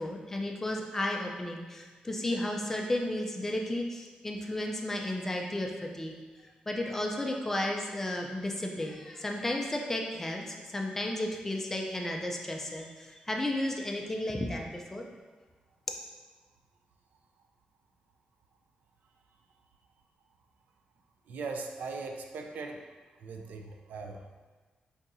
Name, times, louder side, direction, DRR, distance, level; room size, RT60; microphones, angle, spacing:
voice 1, 0.0-6.1 6.7-15.1, left 1 dB, 15° left, 1 dB, 0.3 m, -33 dB
voice 2, 21.3-22.9 23.2-24.3, right 4 dB, 85° right, 3 dB, 0.3 m, -39 dB
3.9 x 2.7 x 2.5 m, 1.3 s
wide cardioid pair, 150°, 3 cm